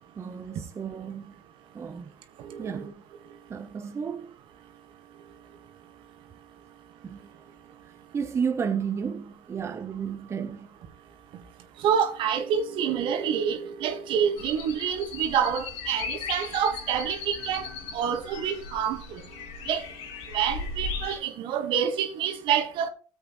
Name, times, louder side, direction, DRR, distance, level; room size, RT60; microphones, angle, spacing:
voice 1, 0.2-1.3 1.7-2.1 2.6-2.9 3.5-4.4 7.0-7.2 7.8-10.7, right 6 dB, 30° right, 0.9 m, -32 dB
voice 2, 11.8-17.7 17.9-19.2 19.7-19.8 20.3-22.9, right 8 dB, 65° right, 1.6 m, -27 dB
sound 1, 14.4-21.2, left 5 dB, 80° left, 2.7 m, -37 dB
14.5 x 7.8 x 3.1 m
supercardioid pair, 100°, 9 cm